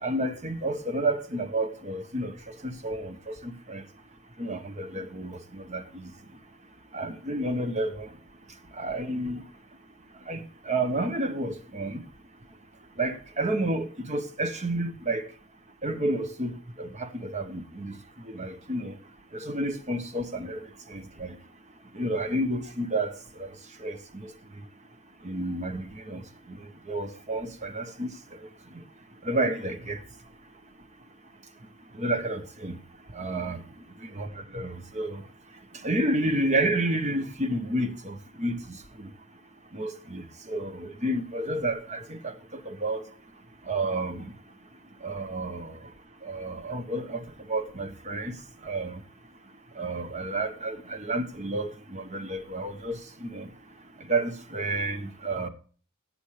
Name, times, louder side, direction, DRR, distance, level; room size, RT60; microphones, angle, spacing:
voice 1, 0.0-3.8 4.4-6.1 6.9-8.1 8.7-9.4 10.3-12.0 13.0-15.3 15.8-18.0 18.2-19.0 19.3-21.4 21.9-23.1 23.4-23.5 23.8-24.3 25.2-26.2 26.5-26.6 26.9-28.4 29.2-30.0 31.9-32.8 33.1-33.6 34.1-34.3 34.5-35.2 35.7-39.1 39.7-43.1 43.7-44.3 45.0-45.8 46.2-48.4 48.6-49.0 49.8-53.5 54.1-55.5, right 2 dB, 35° right, 1.2 m, -30 dB
17.5 x 7.9 x 3.3 m
head